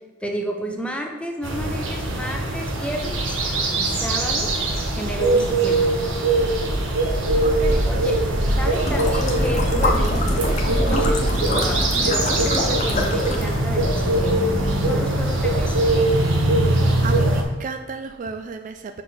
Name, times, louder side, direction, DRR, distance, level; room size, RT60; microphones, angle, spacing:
voice 1, 0.2-3.4 3.8-4.5 4.9-5.8 7.9-8.2 8.6-14.5 14.8-15.8, equal, 5° left, 2 dB, 0.8 m, -31 dB
sound 1, 1.4-17.4, right 1 dB, 75° right, 1.1 m, -21 dB
voice 2, 7.4-9.0 10.9-11.2 16.6-19.0, right 4 dB, 40° right, 7 dB, 0.3 m, -35 dB
sound 2, 8.7-13.6, left 2 dB, 40° left, 1.0 m, -26 dB
6.1 x 4.2 x 4.9 m, 1.3 s
head